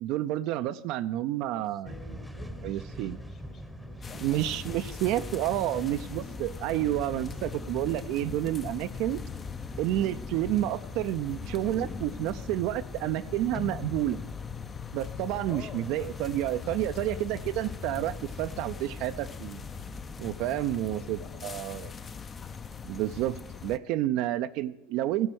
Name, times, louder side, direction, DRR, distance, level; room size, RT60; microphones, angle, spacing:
voice 1, 0.0-1.9 2.6-3.2 4.2-9.2 9.8-14.2 14.9-19.6 20.2-21.9 22.8-25.3, right 13 dB, 55° right, 11 dB, 0.4 m, -30 dB
voice 2, 1.4-5.9 6.6-6.8 15.5-17.8 20.9-21.9, left 6 dB, 45° left, 8 dB, 1.6 m, -51 dB
sound 1, 1.9-21.3, equal, ahead, 0.9 m, -45 dB
sound 2, 4.0-23.8, left 6 dB, 25° left, 0.5 m, -41 dB
15.5 x 5.3 x 6.2 m, 1.0 s
hypercardioid pair, 95°, 0 cm